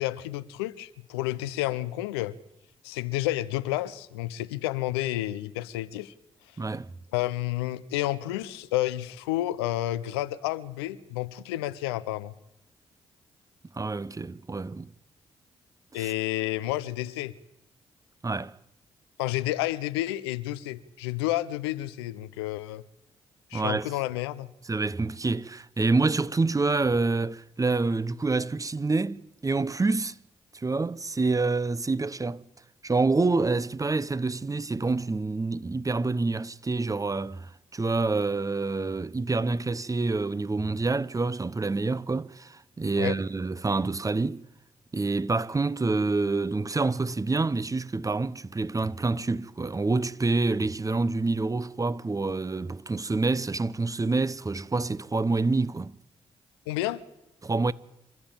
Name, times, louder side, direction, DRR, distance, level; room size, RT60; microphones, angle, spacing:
voice 1, 0.0-2.4 2.8-6.1 7.1-12.3 15.9-17.3 19.2-22.8 23.5-24.5 43.0-43.2 56.7-57.0, left 16 dB, 90° left, 0.7 m, -30 dB
voice 2, 6.6-6.9 13.7-14.9 16.0-16.1 18.2-18.6 23.5-23.9 24.7-30.2 30.5-32.4 32.8-44.4 44.9-55.9 57.4-57.7, right 3 dB, 25° right, 1.0 m, -27 dB
27.0 x 13.0 x 8.9 m
hypercardioid pair, 40°, 13 cm